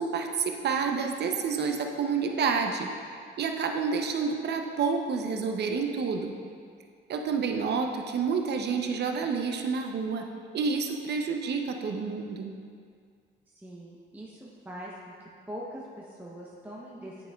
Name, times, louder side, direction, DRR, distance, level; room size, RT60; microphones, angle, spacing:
voice 1, 0.0-6.3 7.1-10.3 10.5-12.5, right 5 dB, 55° right, 4 dB, 0.7 m, -29 dB
voice 2, 13.6-14.9 15.5-17.3, equal, 10° right, -5 dB, 0.8 m, -42 dB
10.0 x 5.7 x 2.3 m, 2.2 s
cardioid pair, 90°, 20 cm